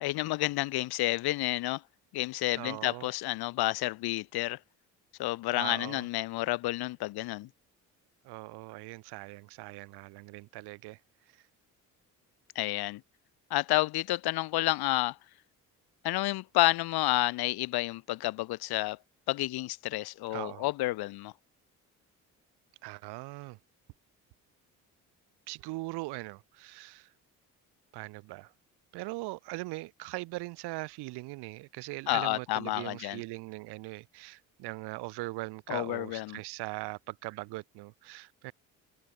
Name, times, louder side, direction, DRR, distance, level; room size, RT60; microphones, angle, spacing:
voice 1, 0.0-1.8 2.1-4.6 5.2-7.5 12.5-13.0 13.5-15.2 16.0-19.0 19.3-21.3 32.1-33.2 35.7-36.4, left 18 dB, 70° left, 1.2 m, -30 dB
voice 2, 2.5-3.1 5.5-6.0 8.2-11.0 20.3-20.6 22.8-23.6 25.5-27.1 27.9-28.5 28.9-38.5, right 22 dB, 80° right, 6.5 m, -40 dB
hypercardioid pair, 60°, 39 cm